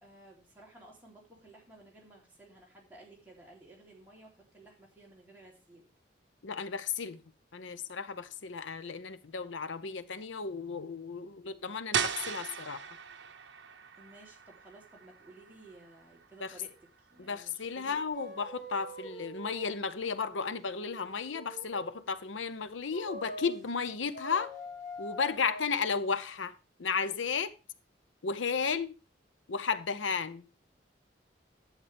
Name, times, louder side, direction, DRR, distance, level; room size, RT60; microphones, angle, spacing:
voice 1, 0.0-5.9 14.0-18.0, right 2 dB, 10° right, 3.3 m, -55 dB
voice 2, 6.4-7.2 7.5-12.8 16.4-16.5 17.2-24.5 25.0-26.5 26.8-27.5 28.2-28.9 29.5-30.4, left 5 dB, 90° left, 0.7 m, -34 dB
sound 1, 11.9-17.6, right 7 dB, 75° right, 0.8 m, -39 dB
sound 2, 18.1-22.0 22.9-23.6 24.1-25.6, equal, 20° left, 4.7 m, -45 dB
11.0 x 8.3 x 3.4 m
head